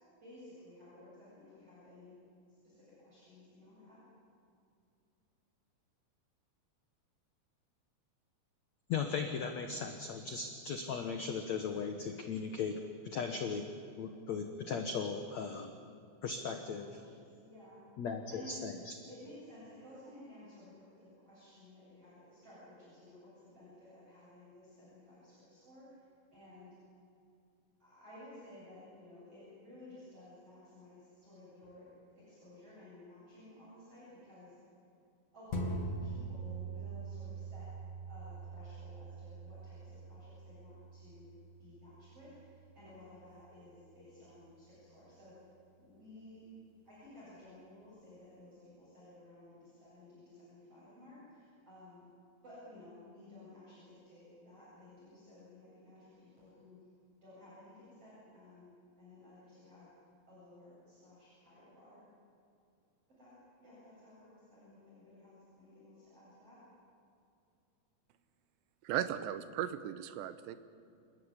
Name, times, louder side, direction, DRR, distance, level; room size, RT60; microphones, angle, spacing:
voice 1, 0.2-2.2 2.5-4.0 16.8-17.8 18.3-18.6 19.0-26.0 26.3-26.7 27.8-31.9 32.1-34.5 35.3-37.7 38.1-41.3 41.6-45.4 45.8-46.5 46.9-52.1 52.4-56.8 57.2-59.9 60.3-62.0 63.1-63.3 63.6-66.6, left 1 dB, 35° right, -9 dB, 9.0 m, -55 dB
voice 2, 8.9-13.7 14.0-15.7 16.2-17.0 18.0-18.9, left 5 dB, 75° left, 5 dB, 1.6 m, -37 dB
sound 1, 35.5-44.3 44.8-44.9, right 2 dB, 45° left, 3.0 m, -44 dB
voice 3, 68.8-70.6, right 11 dB, 80° right, 12 dB, 3.1 m, -36 dB
28.5 x 13.5 x 9.8 m, 2.5 s
omnidirectional pair, 5.0 m